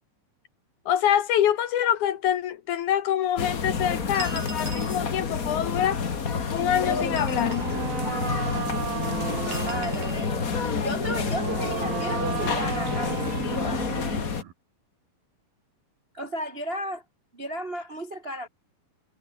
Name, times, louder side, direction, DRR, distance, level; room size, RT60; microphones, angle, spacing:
voice 1, 0.9-6.0 6.5-7.7, left 10 dB, 65° left, 2.3 m, -25 dB
sound 1, 3.4-14.4, left 5 dB, 35° left, 1.4 m, -29 dB
sound 2, 4.1-5.0 7.0-7.8 9.5-10.3, right 4 dB, 65° right, 8.9 m, -40 dB
sound 3, 6.5-14.5, right 10 dB, 80° right, 4.0 m, -34 dB
voice 2, 9.6-10.1 10.8-13.8 16.1-17.0 17.3-18.5, equal, 35° right, 0.9 m, -34 dB
omnidirectional pair, 4.2 m